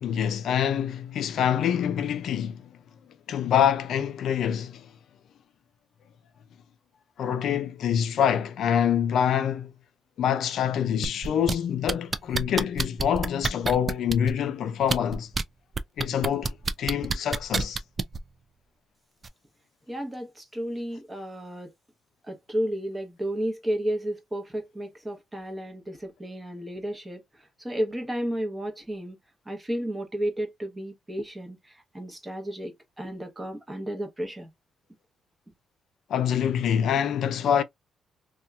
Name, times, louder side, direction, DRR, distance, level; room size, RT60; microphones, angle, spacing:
voice 1, 0.0-2.6 3.3-4.9 7.2-9.7 10.2-15.3 16.0-17.8 36.1-37.6, left 9 dB, 70° left, 0.4 m, -25 dB
sound 1, 11.0-11.5 11.9-14.3 14.8-15.4 15.8-18.2 19.2-19.3, right 4 dB, 35° right, 0.3 m, -27 dB
voice 2, 19.9-21.7 22.3-27.2 27.6-29.2 29.5-31.6 31.9-34.5, right 1 dB, 15° right, 0.9 m, -32 dB
2.8 x 2.3 x 2.2 m
cardioid pair, 90°, 0 cm